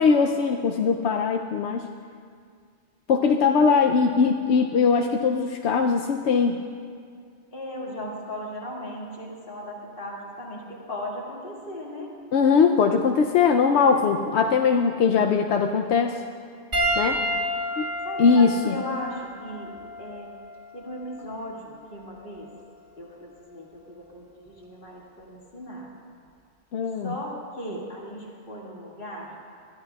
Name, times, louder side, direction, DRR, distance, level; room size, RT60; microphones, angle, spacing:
voice 1, 0.0-1.8 3.1-6.5 12.3-16.2 17.0-17.2 17.8-17.9 18.2-18.7 26.7-27.1, left 5 dB, 85° left, 3 dB, 0.9 m, -21 dB
voice 2, 3.4-4.0 7.5-12.1 16.8-17.3 18.0-20.3 20.7-22.5 23.0-25.9 27.0-29.3, equal, 55° left, -4 dB, 2.3 m, -37 dB
Piano, 16.7-21.4 22.3-22.5 24.5-24.6, equal, 50° right, 2.2 m, -30 dB
21.0 x 13.5 x 2.3 m, 2.2 s
omnidirectional pair, 1.1 m